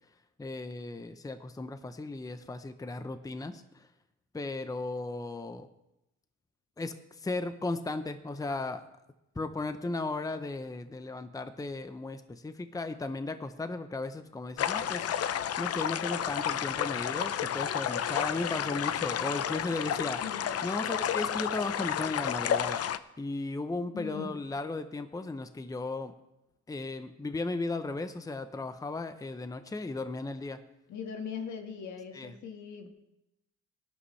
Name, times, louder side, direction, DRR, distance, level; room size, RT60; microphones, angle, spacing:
voice 1, 0.4-3.9 4.3-5.7 6.8-8.8 9.3-15.1 15.6-20.2 20.6-26.1 26.7-30.6 32.1-32.3, left 2 dB, 10° left, 9 dB, 0.8 m, -36 dB
sound 1, 14.6-23.0, left 9 dB, 55° left, 0.6 m, -31 dB
voice 2, 23.9-24.4 30.9-32.9, left 6 dB, 70° left, 4 dB, 1.8 m, -40 dB
18.0 x 11.5 x 3.3 m, 0.91 s
cardioid pair, 90°, 30 cm